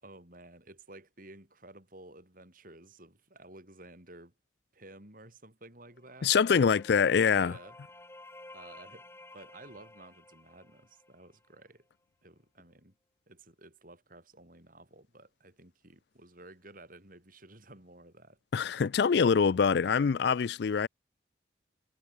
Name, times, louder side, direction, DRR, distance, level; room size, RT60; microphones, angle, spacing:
voice 1, 0.0-4.3 4.7-6.4 7.3-7.8 8.5-11.9 12.2-13.0 13.3-18.4, right 2 dB, 45° right, 7.0 m, -53 dB
sound 1, 5.9-11.6, left 2 dB, 15° left, 3.8 m, -53 dB
voice 2, 6.2-7.5 18.5-20.9, left 6 dB, 60° left, 0.4 m, -24 dB
head